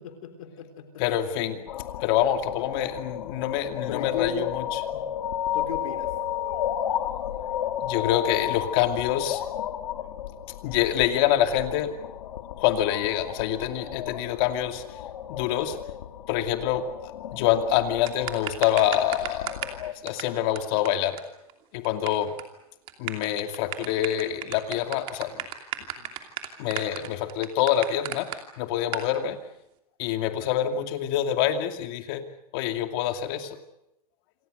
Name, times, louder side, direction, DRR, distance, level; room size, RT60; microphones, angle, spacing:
voice 1, 0.0-1.0 1.4-1.6 2.5-2.7 3.9-4.4 5.5-6.1 13.9-14.1 26.0-26.1 30.5-30.8, left 7 dB, 60° left, 7 dB, 3.6 m, -36 dB
voice 2, 1.0-1.6 2.0-5.0 6.4-6.6 7.8-9.5 10.6-11.9 12.6-14.8 15.3-15.8 16.3-16.9 17.3-19.5 20.0-21.2 21.7-22.3 23.0-25.5 26.6-28.3 28.6-29.4 30.0-32.2 32.5-33.6, left 11 dB, 40° left, 7 dB, 2.5 m, -26 dB
sound 1, 1.7-19.9, left 10 dB, 80° left, 2.3 m, -33 dB
sound 2, 18.1-19.8 20.1-20.2 20.6-20.7 20.9-21.0 21.2-21.3 21.5-22.1 22.4-22.5 22.9-28.4 28.9-29.1, right 14 dB, 30° right, 2.8 m, -33 dB
28.0 x 24.5 x 6.7 m, 0.84 s
supercardioid pair, 165°, 19 cm